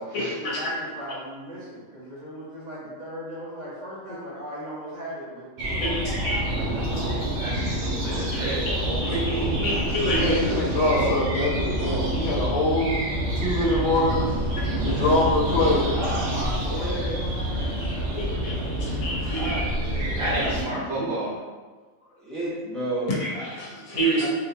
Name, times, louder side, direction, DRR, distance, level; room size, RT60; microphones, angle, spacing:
voice 1, 0.2-7.5 14.7-19.2, equal, 35° right, -9 dB, 1.0 m, -38 dB
sound 1, 5.6-20.6, right 1 dB, 60° right, 0.9 m, -27 dB
voice 2, 5.8-6.4 8.3-9.3 9.6-10.4 18.2-18.5 18.8-19.7 23.2-24.3, right 1 dB, 85° left, -5 dB, 1.4 m, -28 dB
voice 3, 7.4-9.1 10.6-11.2 20.2-21.3, right 1 dB, 80° right, -10 dB, 2.0 m, -31 dB
voice 4, 10.1-13.0 13.3-14.3 14.8-15.9, left 1 dB, 60° left, -5 dB, 1.0 m, -24 dB
voice 5, 15.9-16.3 16.6-17.2 19.3-20.9 22.1-23.5 24.2-24.3, right 1 dB, ahead, -9 dB, 0.7 m, -33 dB
3.9 x 2.4 x 2.7 m, 1.4 s
omnidirectional pair, 1.4 m